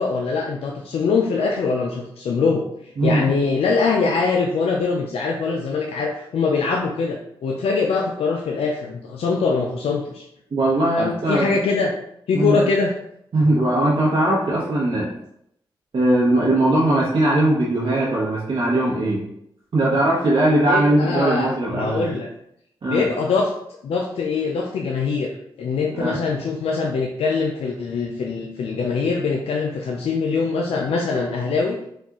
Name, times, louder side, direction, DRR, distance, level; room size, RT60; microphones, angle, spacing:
voice 1, 0.0-10.3 11.0-11.9 12.3-12.9 20.7-22.3 22.9-23.5 23.8-31.8, left 4 dB, 85° left, 0 dB, 0.4 m, -23 dB
voice 2, 10.5-11.5 12.3-12.6 13.3-15.1 15.9-19.2 19.7-22.1 22.8-23.1 25.9-26.2, right 1 dB, 60° right, -7 dB, 1.0 m, -19 dB
4.2 x 2.4 x 3.6 m, 0.75 s
cardioid pair, 60°, 10 cm